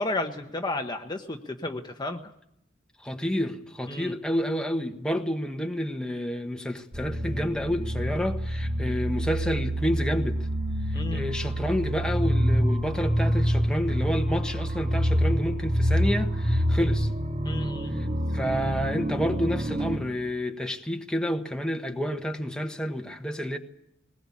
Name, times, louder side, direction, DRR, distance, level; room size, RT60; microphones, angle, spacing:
voice 1, 0.0-2.2 3.9-4.1 10.9-11.2 17.4-17.9, left 2 dB, 20° left, 1.1 m, -32 dB
voice 2, 3.0-10.4 10.9-17.1 17.9-18.1 18.3-23.6, equal, 5° left, 1.3 m, -29 dB
sound 1, 6.9-20.0, equal, 35° right, 2.4 m, -27 dB
20.5 x 20.5 x 8.6 m
head